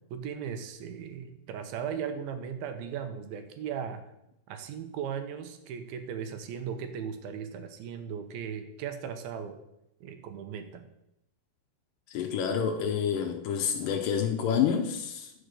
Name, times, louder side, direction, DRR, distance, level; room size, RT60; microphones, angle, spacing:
voice 1, 0.1-4.0 4.5-9.6 10.0-10.8, right 7 dB, 75° right, 8 dB, 2.4 m, -37 dB
voice 2, 12.1-15.3, left 7 dB, 85° left, 4 dB, 1.9 m, -28 dB
11.0 x 5.2 x 6.7 m, 0.85 s
omnidirectional pair, 4.9 m